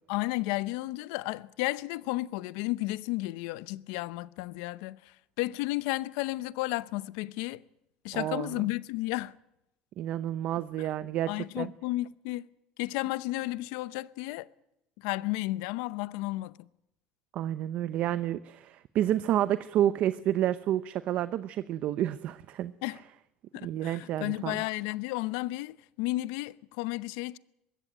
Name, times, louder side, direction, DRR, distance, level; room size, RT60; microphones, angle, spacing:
voice 1, 0.1-5.0 5.4-7.6 8.0-9.3 11.3-12.5 12.8-14.5 15.0-16.5 22.8-23.0 23.5-27.4, left 19 dB, 80° left, 0.7 m, -33 dB
voice 2, 8.1-8.6 10.0-11.7 17.3-22.7 23.6-24.6, right 12 dB, 55° right, 0.7 m, -30 dB
21.0 x 16.0 x 9.1 m
supercardioid pair, 110°, 3 cm